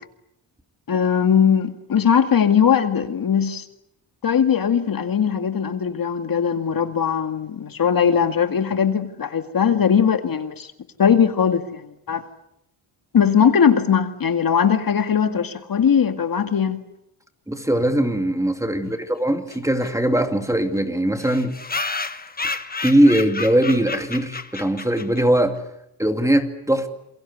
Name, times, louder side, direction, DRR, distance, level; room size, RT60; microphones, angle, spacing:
voice 1, 0.9-3.7 4.2-10.7 11.0-12.2 13.1-16.8, left 7 dB, 50° left, 2.1 m, -19 dB
voice 2, 17.5-21.5 22.4-25.6 26.0-26.9, right 1 dB, 5° right, 2.5 m, -20 dB
sound 1, 19.5-19.6 19.8-19.9 20.2-20.3 20.5-20.6 21.2-25.4, left 3 dB, 20° left, 1.3 m, -31 dB
28.5 x 23.0 x 8.2 m
cardioid pair, 105°, 44 cm